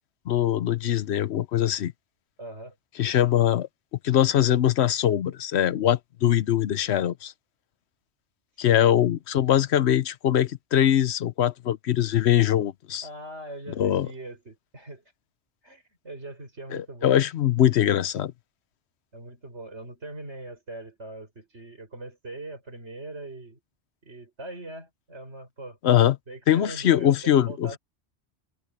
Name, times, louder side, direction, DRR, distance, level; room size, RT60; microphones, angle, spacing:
voice 1, 0.3-1.9 3.0-3.7 4.0-7.3 8.6-13.1 13.8-14.1 16.7-18.3 25.8-26.2 26.5-27.8, left 11 dB, 75° left, 1.0 m, -22 dB
voice 2, 2.4-2.7 8.6-8.9 13.0-15.0 15.6-17.2 19.1-23.6 24.0-25.8 26.3-27.8, right 2 dB, 80° right, 6.1 m, -41 dB
omnidirectional pair, 1.1 m